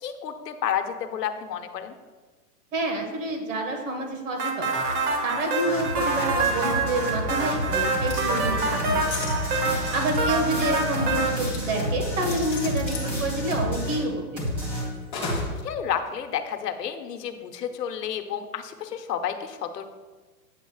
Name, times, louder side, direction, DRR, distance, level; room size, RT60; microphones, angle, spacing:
voice 1, 0.0-1.9 15.6-19.9, left 8 dB, 85° left, 7 dB, 0.9 m, -31 dB
voice 2, 2.7-4.7 5.2-9.4 9.9-14.7, right 2 dB, 55° right, 2 dB, 1.6 m, -28 dB
sound 1, 4.4-11.3, right 3 dB, 70° right, 1.6 m, -26 dB
sound 2, 5.6-14.1 14.4-15.5, equal, 10° right, 1.1 m, -30 dB
sound 3, 7.8-8.3 9.1-10.2 11.3-11.7 12.3-13.2 15.1-15.6 16.1-16.2, left 4 dB, 20° left, 1.0 m, -36 dB
8.2 x 7.2 x 2.4 m, 1.3 s
hypercardioid pair, 175°, 47 cm